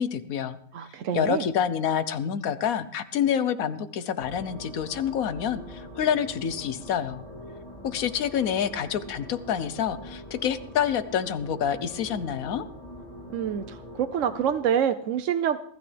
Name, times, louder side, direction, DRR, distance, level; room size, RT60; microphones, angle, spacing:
voice 1, 0.0-0.6 1.1-7.2 7.8-12.6, left 8 dB, 80° left, 13 dB, 1.3 m, -27 dB
voice 2, 0.7-1.4 13.3-15.6, right 8 dB, 65° right, 8 dB, 1.0 m, -26 dB
sound 1, 4.2-14.6, equal, 25° left, 3.2 m, -43 dB
21.0 x 13.0 x 3.4 m, 0.67 s
omnidirectional pair, 1.5 m